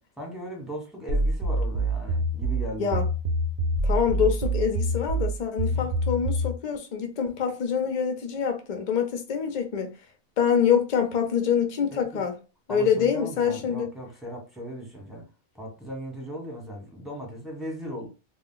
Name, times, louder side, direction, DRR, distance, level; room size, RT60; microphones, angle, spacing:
voice 1, 0.2-3.1 5.7-5.9 11.9-12.2 12.7-15.2 15.5-18.1, equal, ahead, 0.9 m, -37 dB
sound 1, 1.1-6.6, right 1 dB, 85° right, 0.4 m, -26 dB
voice 2, 3.8-9.9 10.4-12.3 12.7-13.9, left 7 dB, 55° left, 0.5 m, -25 dB
2.3 x 2.2 x 3.7 m
omnidirectional pair, 1.4 m